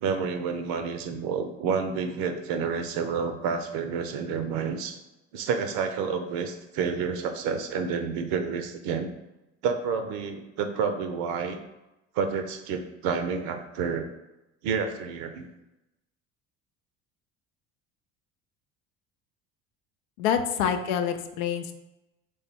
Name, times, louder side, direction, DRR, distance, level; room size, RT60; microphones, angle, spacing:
voice 1, 0.0-5.0 5.3-9.1 9.6-11.6 12.1-14.1 14.6-15.5, right 6 dB, 60° right, 7 dB, 0.7 m, -29 dB
voice 2, 20.2-21.7, left 8 dB, 75° left, 7 dB, 0.6 m, -26 dB
3.6 x 3.4 x 4.4 m, 0.95 s
hypercardioid pair, 65°, 39 cm